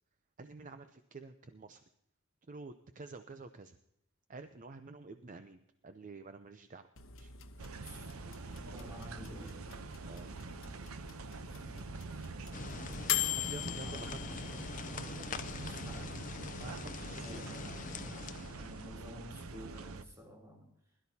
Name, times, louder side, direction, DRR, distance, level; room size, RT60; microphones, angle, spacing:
voice 1, 0.4-1.8 2.5-3.8 4.3-6.9 7.2-7.3 10.0-10.3 13.2-14.4 14.9-15.8 16.6-17.8, right 3 dB, 40° right, 0.5 m, -50 dB
sound 1, 7.0-16.0, left 11 dB, 70° left, 1.1 m, -42 dB
sound 2, 7.6-20.0, right 3 dB, 90° right, 0.7 m, -45 dB
voice 2, 7.8-8.1 8.6-9.7 11.4-12.3 13.6-14.4 15.5-16.2 17.2-20.7, equal, 15° right, 3.2 m, -52 dB
sound 3, 12.5-18.9, left 5 dB, 40° left, 0.5 m, -44 dB
21.5 x 12.5 x 2.8 m
head